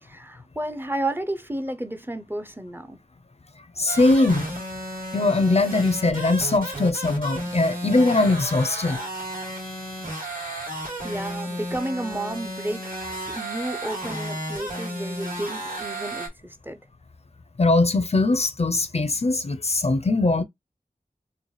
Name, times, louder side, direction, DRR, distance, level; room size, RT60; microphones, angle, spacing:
voice 1, 0.0-3.0 11.0-16.8, right 1 dB, 15° right, 0.5 m, -32 dB
voice 2, 3.8-4.5 5.1-9.0 17.6-20.4, left 2 dB, 45° left, 0.4 m, -21 dB
sound 1, 3.9-16.3, right 1 dB, 70° right, 2.1 m, -33 dB
3.9 x 2.1 x 3.1 m
wide cardioid pair, 55°, 15 cm